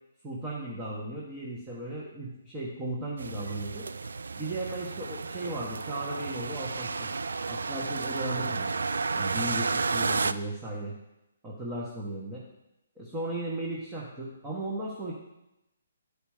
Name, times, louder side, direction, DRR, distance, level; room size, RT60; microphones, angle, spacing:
voice 1, 0.2-3.9 4.4-7.1 7.5-8.7 9.1-11.0 11.4-12.4 13.0-15.1, right 1 dB, 15° right, -6 dB, 1.4 m, -36 dB
sound 1, 3.2-10.3, right 4 dB, 80° right, 0.3 m, -32 dB
10.0 x 5.1 x 5.0 m, 0.93 s
hypercardioid pair, 145°, 0 cm